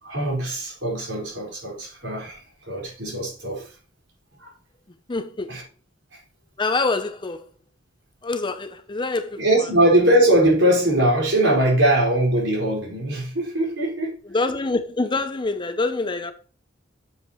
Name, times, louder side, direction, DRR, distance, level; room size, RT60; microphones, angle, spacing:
voice 1, 0.0-3.7 4.4-4.5 5.5-5.6 6.1-6.2 9.4-14.2, right 1 dB, 70° right, 4.9 m, -21 dB
voice 2, 5.1-5.5 6.6-7.4 8.2-9.4 14.3-16.3, left 3 dB, 25° left, 0.6 m, -25 dB
8.3 x 7.3 x 3.1 m
head